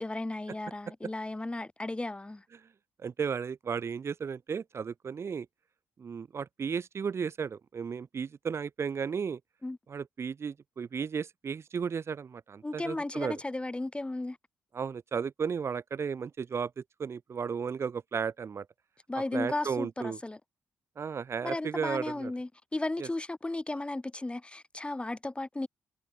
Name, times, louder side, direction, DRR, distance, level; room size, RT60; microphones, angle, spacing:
voice 1, 0.0-2.4 9.6-9.8 12.6-14.4 19.1-20.4 21.4-25.7, left 2 dB, 20° left, 6.4 m, -35 dB
voice 2, 3.0-5.5 6.0-9.4 9.9-13.4 14.7-18.7 19.3-20.2 21.0-22.3 23.0-23.1, right 6 dB, 50° right, 2.0 m, -34 dB
supercardioid pair, 50°, 6 cm